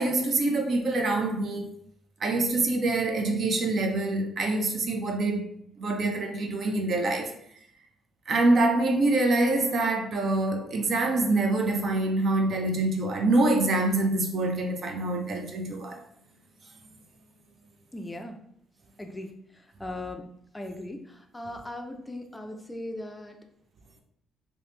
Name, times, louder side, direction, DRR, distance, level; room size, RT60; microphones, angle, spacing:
voice 1, 0.0-1.7 2.2-5.5 5.8-7.3 8.3-16.0, right 2 dB, 55° right, 0.5 m, -25 dB
voice 2, 17.9-18.4 19.0-19.3 19.8-20.3 20.5-23.4, left 1 dB, 10° left, 0.4 m, -38 dB
3.0 x 2.0 x 3.1 m
cardioid pair, 90°, 0 cm